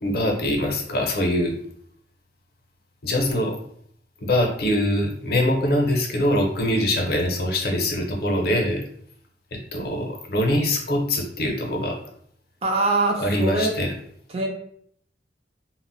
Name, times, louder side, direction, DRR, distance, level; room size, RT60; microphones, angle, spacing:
voice 1, 0.0-1.5 3.0-3.6 4.2-8.8 9.5-12.0 13.2-13.9, left 1 dB, 60° left, 2 dB, 0.6 m, -23 dB
voice 2, 12.6-13.8 14.3-14.5, right 2 dB, 35° right, 1 dB, 0.4 m, -23 dB
2.1 x 2.1 x 3.8 m, 0.66 s
head